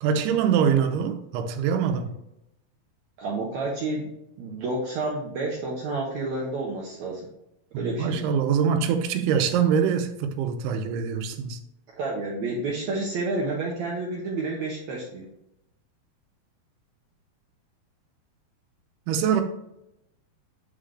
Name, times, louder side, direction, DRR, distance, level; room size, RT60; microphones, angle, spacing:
voice 1, 0.0-2.1 7.7-11.6 19.1-19.4, right 7 dB, 90° right, 2.7 m, -24 dB
voice 2, 3.2-7.3 7.8-8.3 12.0-15.3, right 2 dB, 75° right, 1.7 m, -30 dB
9.0 x 3.8 x 3.3 m
omnidirectional pair, 4.5 m